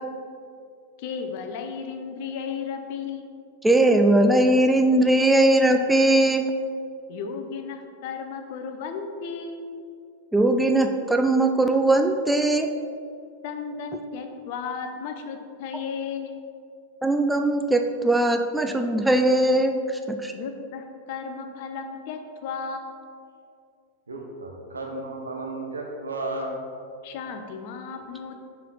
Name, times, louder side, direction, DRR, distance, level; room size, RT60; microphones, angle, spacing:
voice 1, 1.0-3.3 7.1-9.7 13.4-16.4 20.3-23.0 27.0-28.4, left 5 dB, 50° left, 5 dB, 0.6 m, -34 dB
voice 2, 3.6-6.5 10.3-12.7 17.0-20.3, right 1 dB, 5° right, 5 dB, 0.3 m, -20 dB
voice 3, 24.1-26.5, right 2 dB, 75° right, 0 dB, 0.9 m, -33 dB
5.6 x 4.4 x 4.0 m, 2.3 s
figure-of-eight pair, 90°, 0 cm